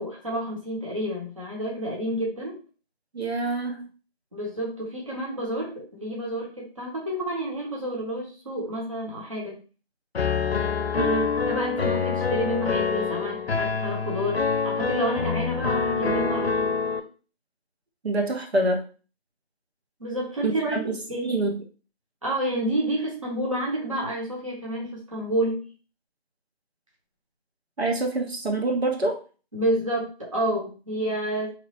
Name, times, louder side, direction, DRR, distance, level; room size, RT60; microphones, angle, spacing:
voice 1, 0.0-2.6 4.3-9.6 11.4-16.8 20.0-20.8 21.1-21.3 22.2-25.7 29.5-31.5, right 1 dB, 30° right, -3 dB, 0.8 m, -29 dB
voice 2, 3.1-3.9 11.0-11.4 18.0-18.8 20.4-21.6 27.8-29.2, right 2 dB, 80° right, 3 dB, 0.9 m, -26 dB
Piano, 10.1-17.0, left 5 dB, 75° left, 0.6 m, -26 dB
3.0 x 2.0 x 4.1 m, 0.36 s
figure-of-eight pair, 170°, 31 cm